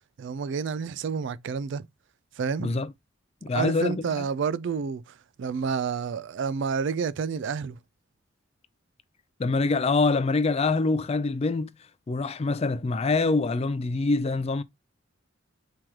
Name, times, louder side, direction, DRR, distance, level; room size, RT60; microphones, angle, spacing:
voice 1, 0.2-1.9 2.4-2.7 3.5-7.8, right 6 dB, 60° right, 0.3 m, -29 dB
voice 2, 2.6-2.9 3.4-4.3 9.4-11.7 12.1-14.6, left 3 dB, 30° left, 0.4 m, -25 dB
4.5 x 3.1 x 3.6 m
head